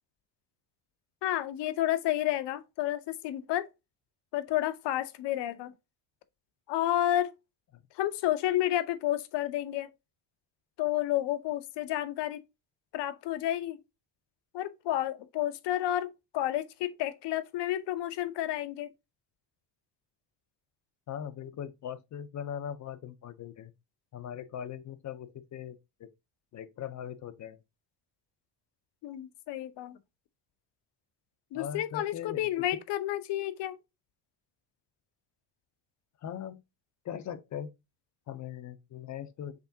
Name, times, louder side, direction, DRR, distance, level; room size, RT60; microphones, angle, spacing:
voice 1, 1.2-3.7 4.3-5.7 6.7-7.3 7.9-9.9 10.8-12.4 12.9-13.8 14.5-18.9 29.0-30.0 31.5-33.8, left 13 dB, 75° left, 0.8 m, -31 dB
voice 2, 21.1-23.7 24.1-25.7 26.0-26.1 26.5-27.6 31.5-32.7 36.2-36.6 37.0-37.7 38.3-39.5, left 9 dB, 45° left, 0.6 m, -40 dB
5.9 x 3.4 x 2.7 m
cardioid pair, 120°, 42 cm